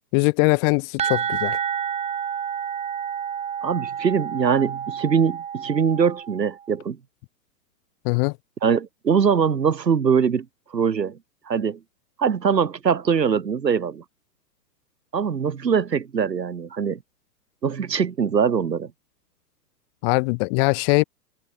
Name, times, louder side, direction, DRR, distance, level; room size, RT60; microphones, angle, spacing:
voice 1, 0.1-1.6 8.1-8.3 20.0-21.0, left 33 dB, 35° left, 1.7 m, -21 dB
sound 1, 1.0-6.6, right 8 dB, 15° right, 1.4 m, -29 dB
voice 2, 3.6-7.0 8.6-10.5 10.7-11.2 11.5-11.8 12.2-14.0 15.1-17.0 17.6-18.9, right 6 dB, 80° right, 6.0 m, -22 dB
hypercardioid pair, 120°, 49 cm